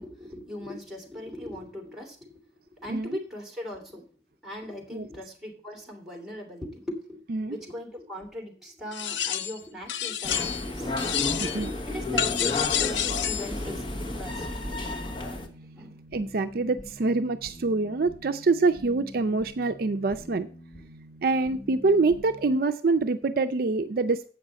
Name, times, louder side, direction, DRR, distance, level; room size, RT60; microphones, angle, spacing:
voice 1, 0.0-2.4 2.7-4.1 4.4-14.6 15.7-16.0, left 1 dB, ahead, 2.6 m, -40 dB
sound 1, 8.9-9.6 9.9-10.7 11.0-11.7 12.2-13.5, left 10 dB, 90° left, 0.5 m, -29 dB
sound 2, 10.2-15.5, left 2 dB, 30° left, 1.3 m, -32 dB
voice 2, 11.4-11.7 16.1-20.5 21.2-24.3, right 3 dB, 55° right, 0.5 m, -25 dB
sound 3, 13.9-22.6, equal, 65° left, 5.5 m, -46 dB
8.1 x 5.9 x 7.5 m
head